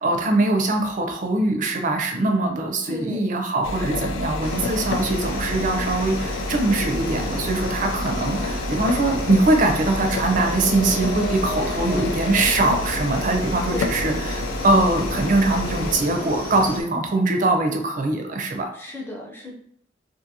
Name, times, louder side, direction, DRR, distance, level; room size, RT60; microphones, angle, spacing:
voice 1, 0.0-18.7, right 2 dB, 40° right, 4 dB, 0.4 m, -22 dB
voice 2, 2.9-3.3 13.7-14.1 18.7-19.5, left 2 dB, 10° left, -1 dB, 0.5 m, -34 dB
sound 1, 3.6-16.0, left 2 dB, 70° left, 0.4 m, -29 dB
sound 2, 4.4-16.8, left 1 dB, 50° left, 0.8 m, -32 dB
2.5 x 2.5 x 2.7 m, 0.65 s
head